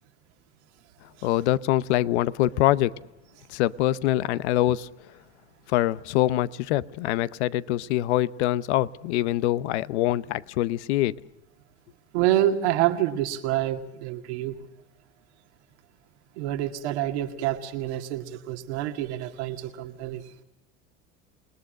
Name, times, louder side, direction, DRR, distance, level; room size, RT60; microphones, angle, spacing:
voice 1, 1.2-2.9 3.5-4.9 5.7-11.1, left 14 dB, 80° left, 18 dB, 0.8 m, -24 dB
voice 2, 12.1-14.6 16.4-20.4, right 13 dB, 80° right, 6 dB, 2.2 m, -27 dB
28.5 x 20.0 x 6.5 m, 0.92 s
hypercardioid pair, 80°, 33 cm